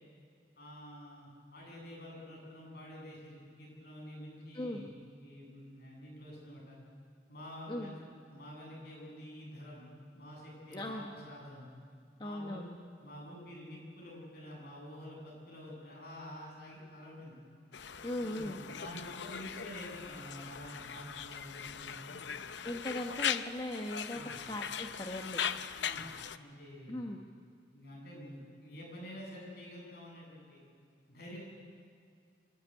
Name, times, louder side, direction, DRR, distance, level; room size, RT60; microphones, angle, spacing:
voice 1, 0.6-4.9 5.2-6.8 7.3-8.0 8.3-9.9 10.1-11.7 12.2-12.7 13.0-17.4 18.2-22.2 24.1-24.4 25.8-26.0 26.4-27.0 27.7-30.6 31.1-31.4, equal, 55° left, -3 dB, 7.5 m, -48 dB
voice 2, 10.7-11.0 12.2-12.8 18.0-18.6 22.6-25.4 26.9-27.2, left 1 dB, 25° left, 2 dB, 1.0 m, -39 dB
Conversation, 17.7-26.4, left 8 dB, 75° left, 0.6 m, -40 dB
26.0 x 12.0 x 9.6 m, 2.3 s
head